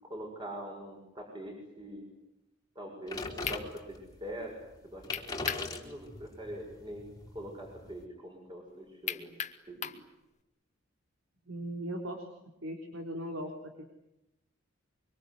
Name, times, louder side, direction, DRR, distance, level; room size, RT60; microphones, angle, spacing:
voice 1, 0.0-2.0 2.8-4.5 4.8-5.0 5.5-7.0 7.3-9.3 9.7-9.9, equal, 25° right, 2 dB, 6.9 m, -43 dB
sound 1, 3.0-3.1 3.4-3.6 5.1-5.7 6.1-6.2 9.1-10.0, left 8 dB, 35° left, 1.6 m, -35 dB
sound 2, 3.1-4.2 4.7-4.8 5.0-8.0, left 3 dB, 20° left, 3.1 m, -40 dB
voice 2, 11.5-12.3 12.6-13.8, right 1 dB, 80° right, 3 dB, 3.9 m, -38 dB
25.0 x 24.5 x 9.7 m, 0.88 s
head